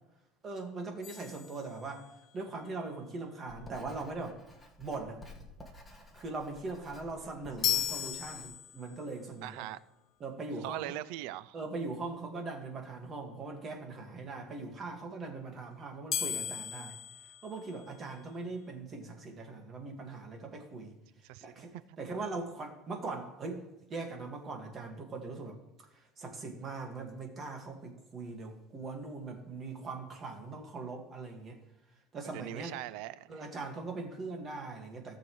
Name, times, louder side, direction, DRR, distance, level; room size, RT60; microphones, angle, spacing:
voice 1, 0.4-2.1 2.3-4.4 4.8-5.2 6.1-9.7 10.2-10.9 11.5-17.0 17.4-21.0 21.4-23.6 23.9-25.6 25.9-31.6 32.1-32.7 33.3-35.2, right 3 dB, 25° right, 1.8 m, -41 dB
sound 1, 1.0-2.3 7.6-9.1 16.1-18.2, left 10 dB, 40° left, 0.7 m, -36 dB
Writing, 3.5-8.5, left 2 dB, 5° left, 1.6 m, -53 dB
voice 2, 9.4-9.8 10.6-11.6 21.2-22.0 32.2-33.5, right 15 dB, 70° right, 0.4 m, -41 dB
17.5 x 6.9 x 3.2 m
cardioid pair, 145°, 0 cm